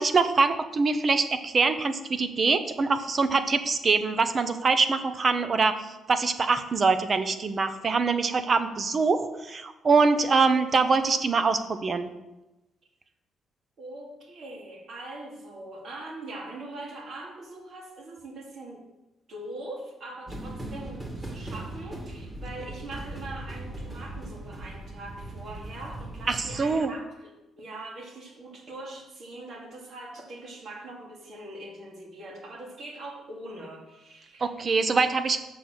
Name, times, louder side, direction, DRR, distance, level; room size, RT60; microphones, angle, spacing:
voice 1, 0.0-12.1 26.3-26.9 34.4-35.4, right 4 dB, 40° right, 10 dB, 0.8 m, -24 dB
voice 2, 13.8-18.9 19.3-34.5, right 2 dB, 60° right, -1 dB, 2.4 m, -42 dB
sound 1, 20.3-26.8, right 1 dB, 20° right, 2.1 m, -39 dB
6.9 x 6.0 x 6.4 m, 1.0 s
cardioid pair, 90°, 0 cm